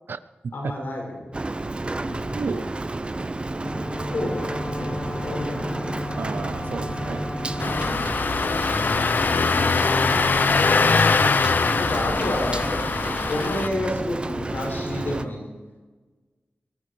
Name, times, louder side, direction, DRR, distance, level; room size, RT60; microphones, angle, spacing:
voice 1, 0.5-1.4 2.0-2.6 3.1-3.3 4.1-6.2 7.6-7.8 11.6-15.4, left 1 dB, 80° left, 6.7 m, -31 dB
Rain, 1.3-15.3, right 2 dB, 30° right, 0.7 m, -31 dB
voice 2, 2.3-2.7 6.2-7.3 7.7-8.2, right 5 dB, 75° right, 0.7 m, -33 dB
Wind instrument woodwind instrument, 3.5-8.0, left 2 dB, 35° left, 1.0 m, -34 dB
Engine starting, 7.6-13.7, left 4 dB, 60° left, 0.7 m, -22 dB
21.0 x 12.0 x 5.1 m
wide cardioid pair, 80°, 4 cm